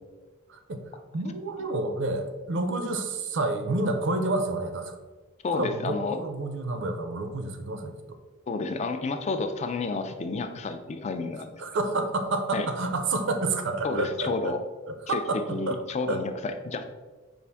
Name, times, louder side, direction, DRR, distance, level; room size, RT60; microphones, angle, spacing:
voice 1, 0.5-0.8 1.1-4.9 5.5-8.2 11.6-14.5 15.1-15.8 16.0-16.2, right 2 dB, 60° right, 7 dB, 0.5 m, -29 dB
voice 2, 5.4-6.2 8.5-11.5 12.5-12.7 13.8-14.6 15.1-15.2 15.5-16.8, left 3 dB, 35° left, 8 dB, 0.3 m, -30 dB
5.3 x 2.5 x 3.4 m, 1.3 s
head